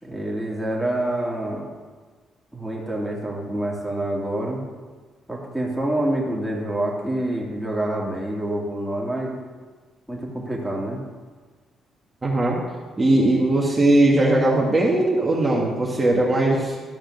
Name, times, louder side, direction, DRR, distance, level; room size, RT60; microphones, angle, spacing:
voice 1, 0.0-1.7 2.5-4.6 5.3-9.4 10.1-11.0, right 1 dB, 5° right, -4 dB, 2.6 m, -27 dB
voice 2, 12.2-12.6 13.0-16.8, right 2 dB, 25° right, -4 dB, 2.0 m, -19 dB
13.0 x 4.9 x 6.5 m, 1.4 s
cardioid pair, 90°, 0 cm